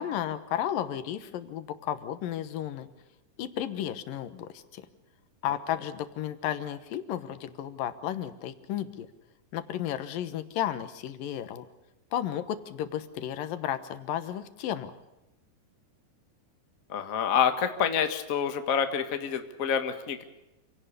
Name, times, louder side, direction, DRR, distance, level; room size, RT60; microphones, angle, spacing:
voice 1, 0.0-2.9 3.4-4.9 5.4-9.1 9.5-11.6 12.1-14.9, left 11 dB, 85° left, 11 dB, 2.9 m, -33 dB
voice 2, 16.9-20.2, left 7 dB, 35° left, 7 dB, 1.4 m, -27 dB
27.0 x 17.5 x 6.8 m, 0.96 s
omnidirectional pair, 3.9 m